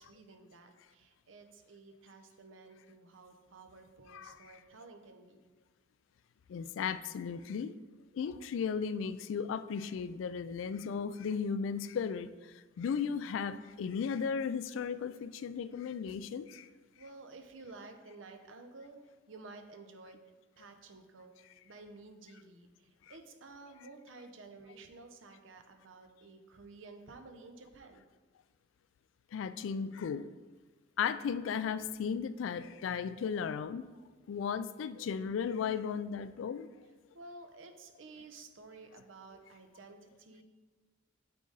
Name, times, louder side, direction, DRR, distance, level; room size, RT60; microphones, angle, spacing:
voice 1, 0.0-5.4 17.0-20.2 20.6-28.0 37.1-40.4, right 3 dB, 85° right, 5 dB, 0.7 m, -53 dB
voice 2, 6.5-7.8 8.1-16.7 29.3-30.3 31.0-33.9 34.3-36.7, left 6 dB, 80° left, 14 dB, 0.3 m, -35 dB
8.2 x 3.9 x 3.9 m, 1.3 s
head